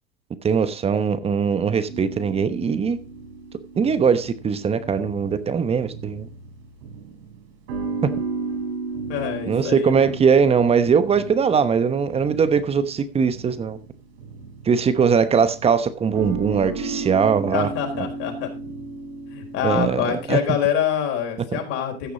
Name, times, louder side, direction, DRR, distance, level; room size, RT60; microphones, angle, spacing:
voice 1, 0.4-3.0 3.8-6.3 9.5-13.8 14.7-17.7 19.6-20.4 21.5-21.6, right 6 dB, 20° right, 1.0 m, -20 dB
sound 1, 1.9-20.6, right 4 dB, 75° right, 5.9 m, -35 dB
voice 2, 9.1-10.1 17.5-18.5 19.3-22.1, left 9 dB, 50° left, 4.4 m, -26 dB
15.5 x 6.6 x 3.9 m
supercardioid pair, 120°, 31 cm